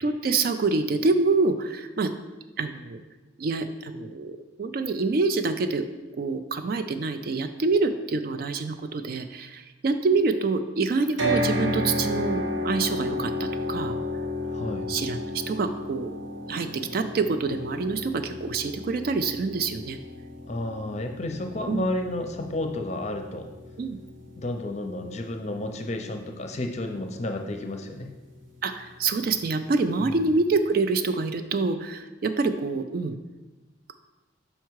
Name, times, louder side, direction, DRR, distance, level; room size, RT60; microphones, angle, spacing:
voice 1, 0.0-2.1 2.6-3.0 3.4-5.9 6.2-14.0 14.9-16.1 16.5-20.0 21.7-21.9 23.8-24.0 28.6-33.1, right 3 dB, 50° right, 9 dB, 0.3 m, -26 dB
sound 1, 11.2-25.3, left 1 dB, 70° right, 1.0 m, -32 dB
voice 2, 14.5-14.9 20.5-23.5 24.4-28.1 30.0-30.3, left 1 dB, 35° left, 4 dB, 0.6 m, -31 dB
5.5 x 4.6 x 4.6 m, 1.1 s
head